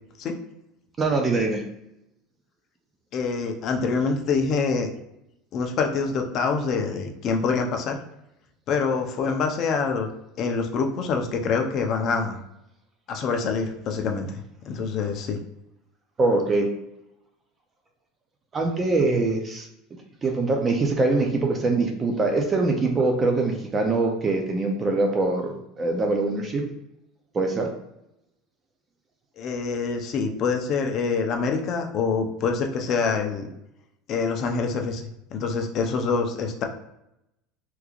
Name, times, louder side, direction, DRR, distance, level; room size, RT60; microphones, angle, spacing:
voice 1, 1.0-1.6 16.2-16.7 18.5-19.7 20.2-26.6 27.3-27.7, right 3 dB, 20° right, 3 dB, 0.5 m, -23 dB
voice 2, 3.1-4.9 5.5-8.0 8.7-10.1 10.4-12.4 13.1-14.3 14.7-15.4 29.4-33.5 34.1-36.7, left 5 dB, 40° left, 4 dB, 0.5 m, -25 dB
3.6 x 3.0 x 2.4 m, 0.85 s
supercardioid pair, 145°, 0 cm